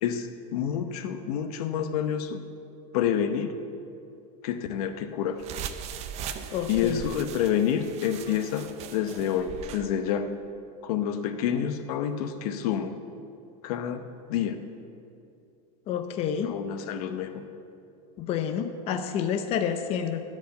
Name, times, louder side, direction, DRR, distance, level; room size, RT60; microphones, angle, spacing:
voice 1, 0.0-2.4 2.9-3.6 4.4-5.4 6.7-10.3 10.8-13.0 13.6-14.6 16.4-17.4, left 9 dB, 75° left, 9 dB, 0.9 m, -28 dB
sound 1, 5.4-9.9, right 8 dB, 35° right, 0.6 m, -39 dB
voice 2, 6.5-7.0 15.9-16.5 18.2-20.2, left 8 dB, 30° left, 7 dB, 0.6 m, -29 dB
14.0 x 5.3 x 8.4 m, 2.6 s
supercardioid pair, 155°, 19 cm